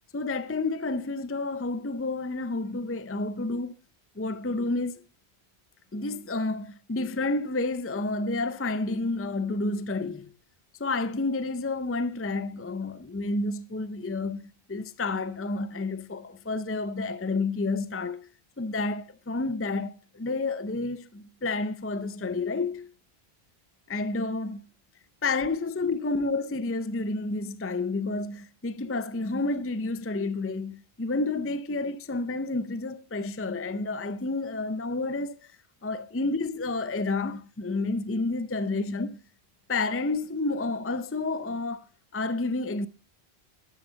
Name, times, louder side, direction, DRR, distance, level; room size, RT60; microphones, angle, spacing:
voice 1, 0.1-3.7 4.2-5.0 5.9-10.3 10.8-18.3 18.6-22.9 23.9-24.6 25.2-35.5 35.8-39.2 39.7-41.9 42.1-42.9, left 3 dB, 15° left, 0.5 m, -30 dB
12.5 x 11.5 x 4.0 m
omnidirectional pair, 1.1 m